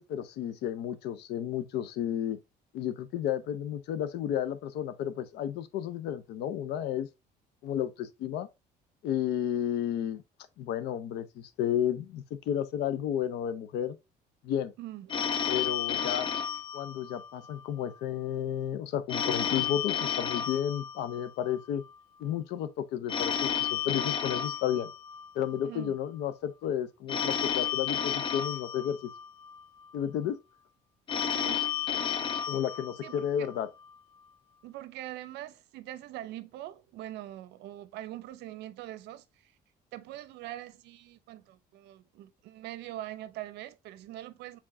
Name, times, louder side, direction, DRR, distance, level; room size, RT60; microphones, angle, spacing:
voice 1, 0.0-2.4 2.7-7.1 7.6-8.5 9.0-10.2 10.6-14.0 14.4-14.7 15.5-16.3 16.7-21.8 22.2-24.9 25.3-29.1 29.9-30.4 32.5-33.7, left 10 dB, 80° left, 0.6 m, -32 dB
voice 2, 14.8-15.1 25.6-26.0 31.2-31.7 33.0-33.5 34.6-39.2 39.9-44.6, right 14 dB, 80° right, 0.6 m, -43 dB
Telephone, 15.1-17.6 19.1-21.6 23.1-25.6 27.1-29.6 31.1-33.6, left 8 dB, 30° left, 0.5 m, -32 dB
4.7 x 3.6 x 2.6 m
cardioid pair, 110°, 17 cm